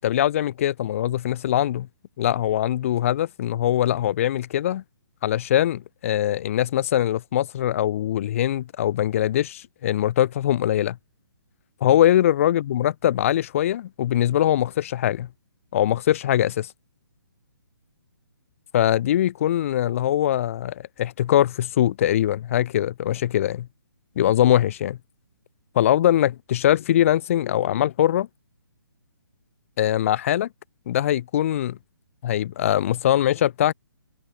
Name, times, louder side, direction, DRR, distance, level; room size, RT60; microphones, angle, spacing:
voice 1, 0.0-1.9 2.2-4.8 5.2-11.0 11.8-15.3 15.7-16.7 18.7-23.7 24.2-25.0 25.7-28.3 29.8-30.5 30.9-31.8 32.2-33.7, left 11 dB, 35° left, 0.4 m, -22 dB
figure-of-eight pair, 145°, 12 cm